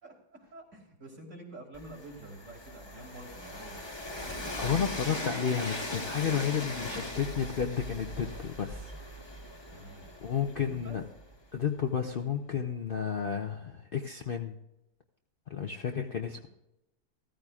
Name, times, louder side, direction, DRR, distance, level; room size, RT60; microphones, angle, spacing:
voice 1, 0.0-3.8 9.7-11.0 16.4-16.5, right 1 dB, 50° right, -1 dB, 2.8 m, -48 dB
Train, 1.7-11.6, left 1 dB, 20° left, 1.2 m, -40 dB
voice 2, 4.6-8.9 10.2-11.0 11.5-14.6 15.5-16.5, left 7 dB, 50° left, 4 dB, 0.7 m, -32 dB
15.5 x 14.0 x 2.4 m, 0.89 s
omnidirectional pair, 1.6 m